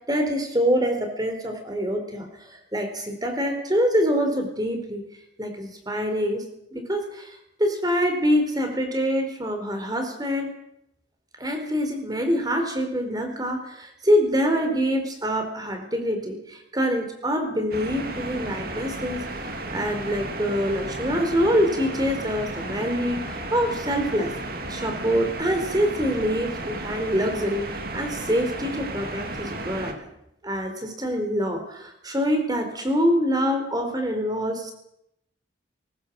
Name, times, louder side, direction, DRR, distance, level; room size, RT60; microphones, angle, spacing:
voice 1, 0.1-5.0 5.4-6.4 6.7-10.5 11.4-19.2 19.7-24.3 24.7-30.1 30.4-34.7, equal, 20° right, 6 dB, 4.4 m, -25 dB
sound 1, 17.7-29.9, right 2 dB, 50° right, 2.8 m, -33 dB
21.0 x 19.0 x 7.7 m, 0.79 s
head